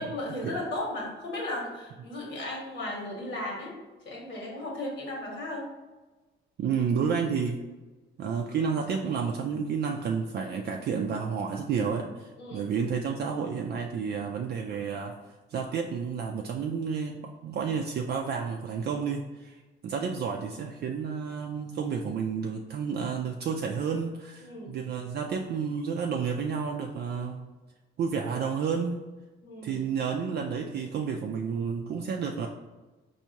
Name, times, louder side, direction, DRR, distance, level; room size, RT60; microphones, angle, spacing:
voice 1, 0.0-3.7 4.0-5.7 12.4-12.6 24.4-24.7 29.4-29.8, left 1 dB, 70° left, -2 dB, 1.5 m, -35 dB
voice 2, 6.6-7.6 8.2-15.1 15.5-17.2 17.4-27.4 28.0-29.0 29.6-32.5, right 6 dB, 55° right, 1 dB, 0.4 m, -30 dB
4.4 x 2.7 x 2.9 m, 1.2 s
cardioid pair, 90°, 20 cm